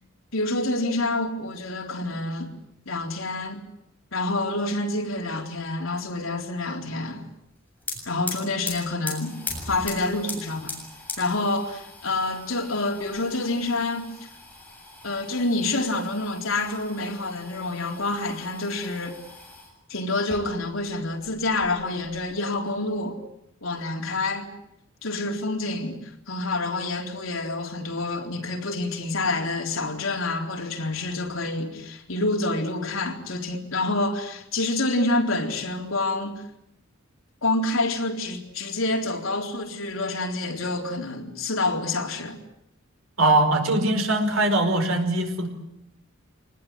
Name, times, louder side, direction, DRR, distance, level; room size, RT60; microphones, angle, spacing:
voice 1, 0.3-2.6 2.8-3.6 4.1-7.3 8.1-10.7 11.2-14.3 15.0-19.2 19.9-23.2 23.6-24.5 25.0-26.0 26.3-36.5 37.4-42.4, left 2 dB, 75° left, 4.0 m, -27 dB
sound 1, 7.5-7.6 7.8-19.7 20.2-20.9 21.2-22.2, left 2 dB, 10° left, 7.7 m, -40 dB
voice 2, 43.2-45.5, right 2 dB, 80° right, 4.8 m, -21 dB
26.0 x 20.0 x 9.8 m
head